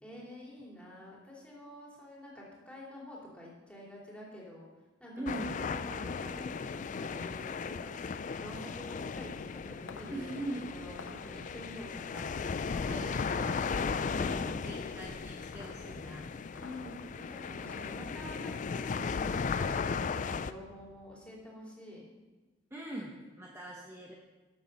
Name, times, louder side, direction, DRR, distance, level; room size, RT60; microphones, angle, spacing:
voice 1, 0.0-4.7 5.0-8.0 8.4-13.6 14.0-14.5 16.6-22.1, left 1 dB, 5° left, -5 dB, 3.0 m, -48 dB
voice 2, 5.2-5.6 10.1-10.7 12.9-13.6 14.1-16.3 22.7-24.1, right 1 dB, 15° right, -2 dB, 1.0 m, -41 dB
sound 1, 5.3-20.5, left 5 dB, 45° left, 0.4 m, -36 dB
sound 2, 9.9-20.0, left 4 dB, 90° left, 0.7 m, -53 dB
12.5 x 7.2 x 5.3 m, 1.2 s
head